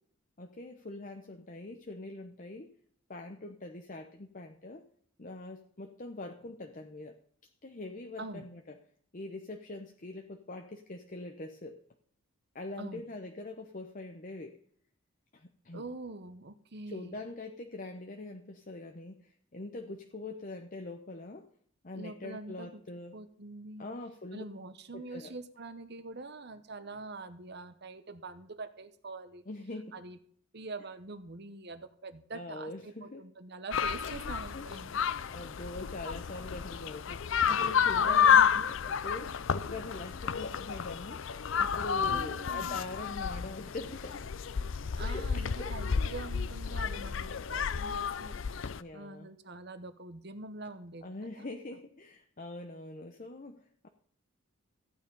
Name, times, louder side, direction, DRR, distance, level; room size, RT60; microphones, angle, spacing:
voice 1, 0.4-2.7 3.1-4.8 5.2-7.2 7.6-8.8 9.1-11.8 12.5-14.6 15.3-15.8 16.9-21.5 21.8-23.1 23.8-24.4 24.9-25.3 29.5-29.9 32.3-33.3 34.0-34.7 35.3-44.3 45.0-46.1 48.8-49.3 51.0-53.9, left 2 dB, 40° left, 5 dB, 0.8 m, -43 dB
voice 2, 15.7-17.2 21.9-22.8 23.1-23.8 24.3-29.4 29.9-30.2 30.5-35.0 37.9-38.5 42.1-42.8 45.0-48.3 48.9-51.1 51.3-51.5, right 3 dB, 50° right, 11 dB, 1.0 m, -44 dB
sound 1, 33.7-48.8, left 7 dB, 60° left, 0.5 m, -30 dB
15.0 x 9.2 x 5.4 m, 0.62 s
head